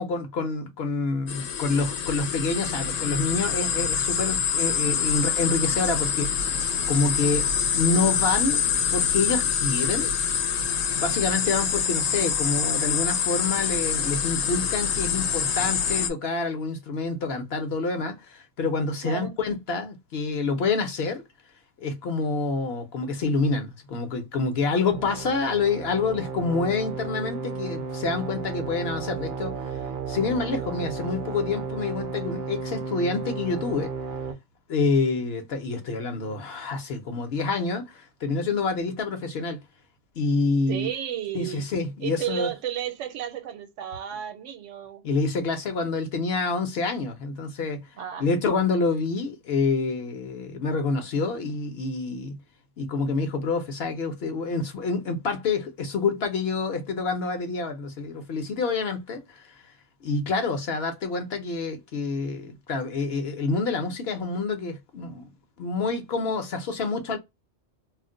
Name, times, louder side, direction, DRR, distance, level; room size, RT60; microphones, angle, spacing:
voice 1, 0.0-7.5 7.7-8.6 8.9-10.1 10.9-21.2 21.8-29.7 30.1-33.9 34.7-39.6 40.2-40.9 41.3-42.5 45.0-47.9 48.2-52.4 52.8-59.6 60.0-65.3 65.6-67.2, left 4 dB, 60° left, 0.8 m, -27 dB
sound 1, 1.3-16.1, left 7 dB, 85° left, 0.9 m, -25 dB
voice 2, 19.0-19.3 40.7-41.7 42.0-45.0 48.0-48.3, right 11 dB, 75° right, 0.9 m, -33 dB
sound 2, 24.9-34.3, right 5 dB, 55° right, 0.6 m, -33 dB
2.5 x 2.1 x 3.6 m
omnidirectional pair, 1.3 m